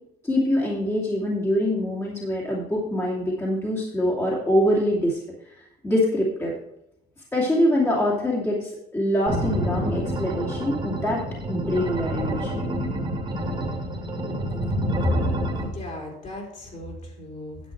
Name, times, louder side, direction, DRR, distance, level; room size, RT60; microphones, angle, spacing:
voice 1, 0.2-5.2 5.8-6.5 7.3-11.2 11.5-12.7, left 1 dB, 15° left, -4 dB, 2.5 m, -24 dB
sound 1, 9.3-15.7, equal, 25° right, 2.5 m, -28 dB
voice 2, 15.6-17.6, equal, 45° left, -1 dB, 4.0 m, -33 dB
10.5 x 7.6 x 4.5 m, 0.80 s
cardioid pair, 110°, 17 cm